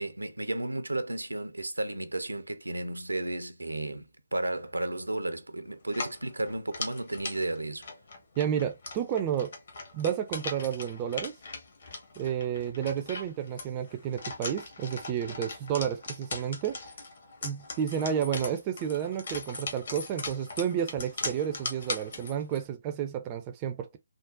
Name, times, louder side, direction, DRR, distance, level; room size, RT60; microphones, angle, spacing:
voice 1, 0.0-7.9, right 2 dB, 80° right, 0.6 m, -33 dB
sound 1, 5.9-22.6, left 3 dB, 50° left, 1.0 m, -40 dB
voice 2, 8.4-9.5 9.9-11.3 12.2-16.8 17.4-24.0, right 9 dB, 20° right, 0.4 m, -31 dB
3.8 x 2.0 x 2.4 m
figure-of-eight pair, 145°, 0 cm